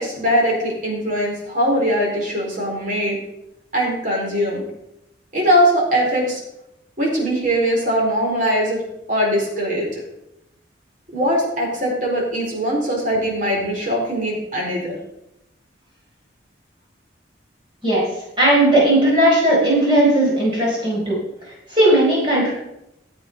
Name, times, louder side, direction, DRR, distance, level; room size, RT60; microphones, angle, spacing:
voice 1, 0.0-3.2 3.7-4.6 5.3-6.4 7.0-8.8 9.1-10.0 11.1-15.0, equal, 45° right, -2 dB, 4.4 m, -21 dB
voice 2, 18.4-22.5, right 1 dB, 25° right, -5 dB, 4.3 m, -17 dB
12.5 x 8.4 x 5.5 m, 0.86 s
head